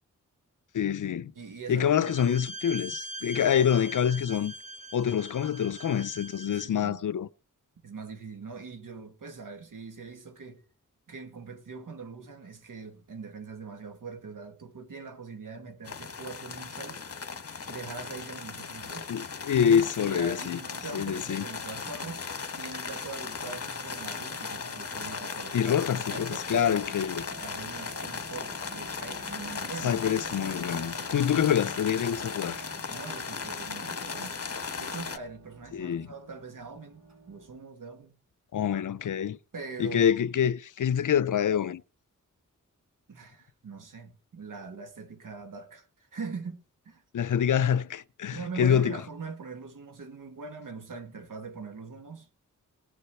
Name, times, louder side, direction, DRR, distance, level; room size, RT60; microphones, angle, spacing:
voice 1, 0.7-1.3 1.7-4.5 4.9-7.3 19.1-20.6 20.9-21.4 25.5-27.2 29.8-32.6 35.7-36.1 38.5-39.4 39.8-41.8 47.1-49.0, left 8 dB, 70° left, 0.6 m, -26 dB
voice 2, 1.4-2.4 6.6-7.0 7.8-10.6 11.1-17.0 17.7-19.1 20.0-22.2 22.6-26.8 27.4-30.0 32.9-34.4 34.8-38.2 39.5-40.5 43.1-47.0 48.3-52.3, right 4 dB, 80° right, 2.1 m, -42 dB
Bowed string instrument, 1.9-6.8, right 1 dB, 20° right, 0.8 m, -42 dB
sound 1, 15.8-35.2, left 5 dB, 45° left, 1.4 m, -37 dB
sound 2, 22.0-22.2 23.1-23.2 23.4-37.6, right 2 dB, 60° right, 7.3 m, -49 dB
19.0 x 6.6 x 4.4 m
cardioid pair, 55°, 32 cm